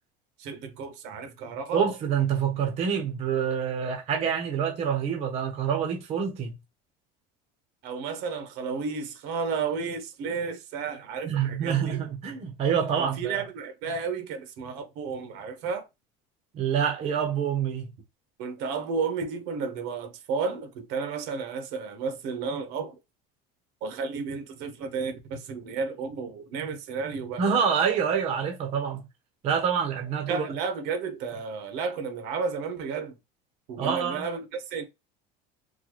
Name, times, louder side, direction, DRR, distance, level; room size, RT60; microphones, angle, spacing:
voice 1, 0.4-1.9 7.8-12.0 13.0-15.9 18.4-23.0 23.8-27.4 30.3-33.1 33.7-34.8, right 5 dB, 60° right, 0.9 m, -32 dB
voice 2, 1.7-6.5 11.2-13.4 16.5-17.9 27.4-29.0 29.4-30.5 33.8-34.3, right 7 dB, 35° right, 0.7 m, -26 dB
3.9 x 2.2 x 3.0 m
cardioid pair, 165°, 20 cm